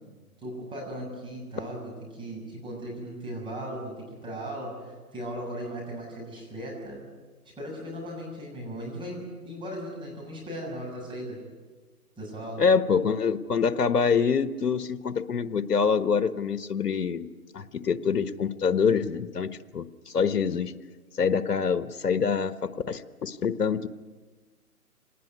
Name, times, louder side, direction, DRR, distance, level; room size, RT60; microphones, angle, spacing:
voice 1, 0.4-7.0 7.6-11.4 12.2-12.6, right 1 dB, 10° right, -2 dB, 7.0 m, -37 dB
voice 2, 12.6-17.3 17.5-20.7 21.1-23.9, left 6 dB, 85° left, 13 dB, 1.3 m, -25 dB
25.5 x 19.5 x 9.5 m, 1.4 s
hypercardioid pair, 145°, 46 cm